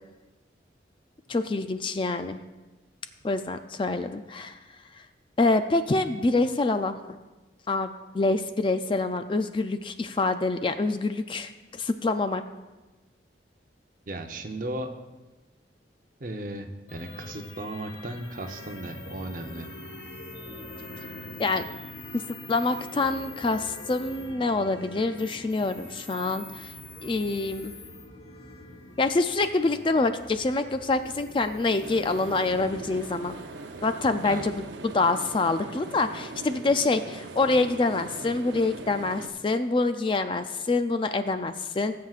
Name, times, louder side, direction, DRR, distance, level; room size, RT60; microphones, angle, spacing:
voice 1, 1.3-2.4 3.2-4.6 4.9-5.1 5.4-7.0 7.7-12.4 21.4-21.6 22.5-26.7 27.0-27.7 29.0-33.4 33.8-41.9, left 3 dB, 25° left, 9 dB, 0.3 m, -26 dB
voice 2, 14.1-14.9 16.2-19.7 34.2-34.4, right 1 dB, 45° right, 5 dB, 0.8 m, -36 dB
sound 1, 16.9-34.5, left 2 dB, 70° left, 1.2 m, -44 dB
sound 2, 31.8-39.3, right 3 dB, 75° right, 0.7 m, -41 dB
19.0 x 7.6 x 2.4 m, 1.1 s
head